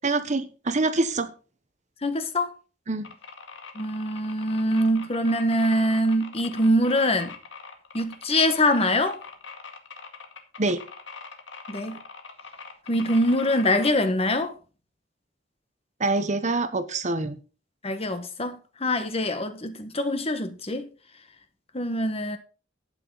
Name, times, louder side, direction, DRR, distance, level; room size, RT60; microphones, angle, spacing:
voice 1, 0.0-1.3 2.9-3.1 10.6-10.8 16.0-17.4, right 3 dB, 40° right, 1.0 m, -25 dB
voice 2, 2.0-2.5 3.7-7.3 7.9-9.2 11.7-12.0 12.9-14.5 17.8-20.9 21.7-22.4, left 1 dB, 35° left, 1.4 m, -24 dB
sound 1, 3.0-13.9, left 5 dB, 85° left, 2.1 m, -42 dB
11.5 x 9.1 x 4.0 m
head